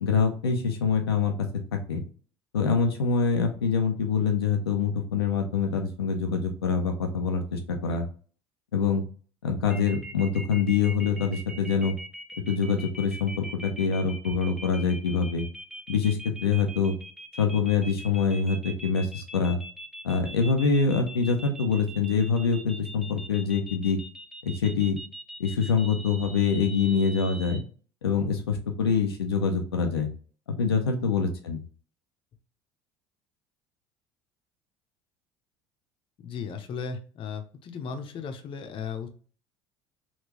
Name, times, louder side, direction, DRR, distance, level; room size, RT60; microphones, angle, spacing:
voice 1, 0.0-2.0 2.5-8.1 8.7-9.0 9.4-12.0 12.5-15.5 15.9-17.0 17.4-19.6 20.0-24.0 24.4-25.0 25.4-27.6 28.0-30.1 30.6-31.6, left 5 dB, 85° left, 3 dB, 0.5 m, -25 dB
sound 1, 9.7-27.6, equal, 5° right, 0.7 m, -42 dB
voice 2, 36.2-39.1, left 6 dB, 45° left, 7 dB, 0.7 m, -36 dB
3.7 x 2.3 x 2.8 m, 0.40 s
hypercardioid pair, 65°, 13 cm